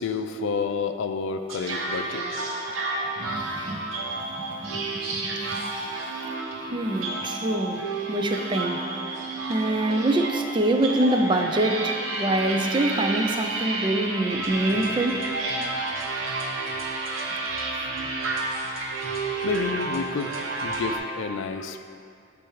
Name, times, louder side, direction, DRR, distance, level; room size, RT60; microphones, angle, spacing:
voice 1, 0.0-2.3 19.4-20.3 20.6-21.8, left 5 dB, 70° left, 8 dB, 0.4 m, -29 dB
sound 1, 1.5-21.0, right 3 dB, 85° right, 0.9 m, -31 dB
voice 2, 3.2-3.8 4.3-5.6 6.7-7.8 8.1-8.8 9.5-15.2, right 1 dB, 25° right, 4 dB, 0.4 m, -25 dB
10.0 x 3.4 x 4.7 m, 2.4 s
head